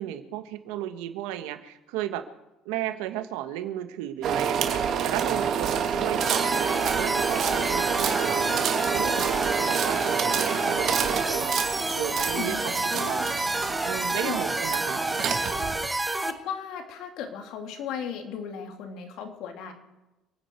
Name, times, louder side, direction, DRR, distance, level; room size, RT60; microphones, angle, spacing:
voice 1, 0.0-2.2 2.6-13.4 13.8-15.0, right 12 dB, 90° right, 9 dB, 1.3 m, -34 dB
sound 1, 4.2-15.9, right 7 dB, 55° right, 2.4 m, -28 dB
voice 2, 5.7-6.2 12.3-13.1 14.2-14.4 16.2-19.7, left 7 dB, 70° left, 4 dB, 2.8 m, -36 dB
sound 2, 6.2-16.3, right 2 dB, 10° right, 1.2 m, -29 dB
28.5 x 9.5 x 4.6 m, 1.0 s
cardioid pair, 110°, 0 cm